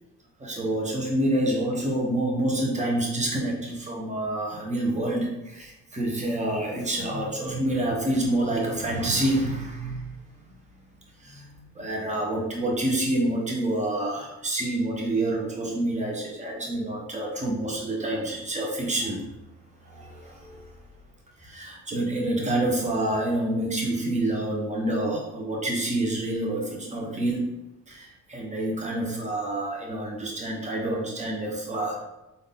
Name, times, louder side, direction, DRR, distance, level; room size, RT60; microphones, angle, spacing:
voice 1, 0.4-10.1 11.2-19.3 19.8-20.7 21.4-27.5 27.9-32.0, right 1 dB, 25° right, -1 dB, 1.1 m, -27 dB
3.5 x 2.7 x 3.8 m, 0.96 s
cardioid pair, 90°, 30 cm